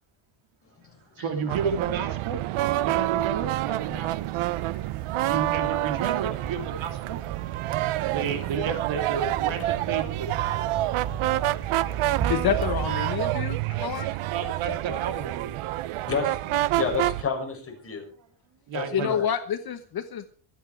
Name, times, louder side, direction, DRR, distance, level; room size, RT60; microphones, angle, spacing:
voice 1, 0.6-1.6 2.8-3.0 4.6-5.2 9.6-9.7 11.4-12.3 13.7-13.8 16.1-18.1 18.7-19.3, left 5 dB, 25° left, 1 dB, 6.9 m, -33 dB
voice 2, 1.2-2.4 2.8-4.5 5.2-7.2 8.1-10.5 14.3-15.5 18.7-19.1, right 6 dB, 65° right, 7 dB, 2.8 m, -31 dB
sound 1, 1.5-17.2, right 16 dB, 90° right, 0.8 m, -28 dB
sound 2, 4.1-12.9, right 7 dB, 50° right, 3.9 m, -37 dB
voice 3, 12.3-14.1 18.9-20.3, left 9 dB, 50° left, 9 dB, 1.2 m, -28 dB
25.0 x 9.2 x 4.6 m, 0.43 s
cardioid pair, 150°, 48 cm